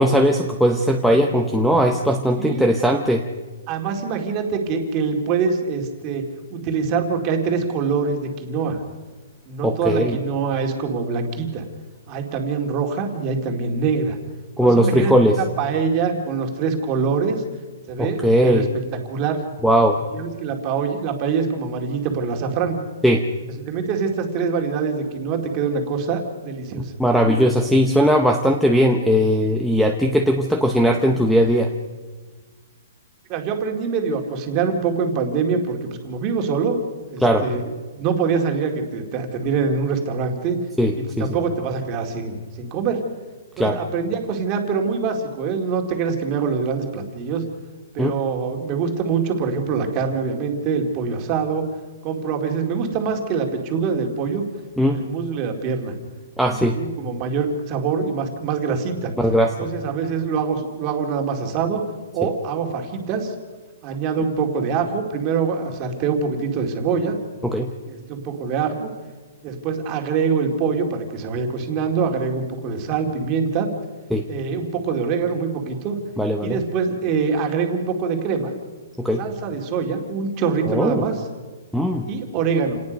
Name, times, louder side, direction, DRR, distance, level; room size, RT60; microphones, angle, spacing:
voice 1, 0.0-3.2 9.6-10.2 14.6-15.4 18.0-18.7 19.6-20.0 23.0-23.2 27.0-31.7 37.2-37.4 40.8-41.3 43.6-43.8 48.0-48.1 54.8-55.0 56.4-56.7 59.2-59.7 67.4-67.7 74.1-74.2 76.2-76.6 79.0-79.2 80.7-81.0 81.7-82.1, equal, ahead, 4 dB, 0.7 m, -18 dB
voice 2, 2.3-2.7 3.7-6.2 6.5-8.8 9.5-11.6 12.1-14.2 14.6-17.4 17.9-18.6 19.0-19.4 20.1-22.8 23.6-26.9 33.3-36.8 37.1-40.6 41.0-43.0 43.6-47.4 47.9-51.6 52.0-54.4 54.9-55.9 56.7-59.1 59.6-61.8 62.1-63.3 63.8-67.2 67.9-68.9 69.4-73.7 74.3-76.0 76.4-78.5 79.2-81.2 82.1-82.8, right 5 dB, 20° right, 3 dB, 2.2 m, -24 dB
28.5 x 18.5 x 5.3 m, 1.3 s
hypercardioid pair, 175°, 0 cm